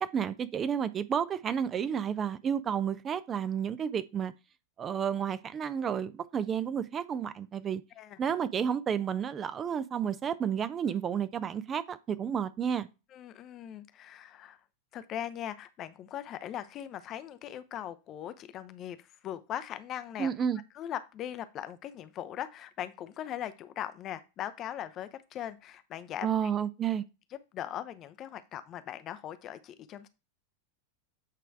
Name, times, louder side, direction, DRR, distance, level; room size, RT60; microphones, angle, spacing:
voice 1, 0.0-4.3 4.8-7.8 8.2-12.9 20.2-20.6 26.2-27.0, right 8 dB, 25° right, 0.5 m, -31 dB
voice 2, 13.1-14.6 14.9-20.3 20.7-26.3 27.5-30.1, left 11 dB, 30° left, 0.6 m, -40 dB
8.4 x 3.3 x 4.6 m
figure-of-eight pair, 90°, 0 cm